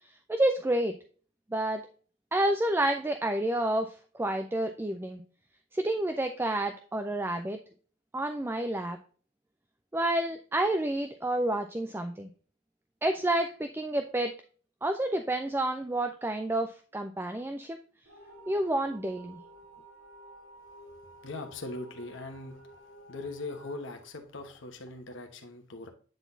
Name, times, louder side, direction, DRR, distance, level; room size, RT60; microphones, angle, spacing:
voice 1, 0.1-1.0 1.5-1.8 2.3-5.2 5.7-7.6 8.1-9.0 9.9-12.3 13.0-14.3 14.8-17.8 18.5-19.4, right 1 dB, 10° right, 6 dB, 0.3 m, -29 dB
sound 1, 18.1-25.0, right 1 dB, 80° right, 1.2 m, -52 dB
voice 2, 21.2-22.6 23.1-25.9, left 2 dB, 60° left, 5 dB, 1.1 m, -40 dB
9.1 x 4.0 x 2.6 m, 0.42 s
head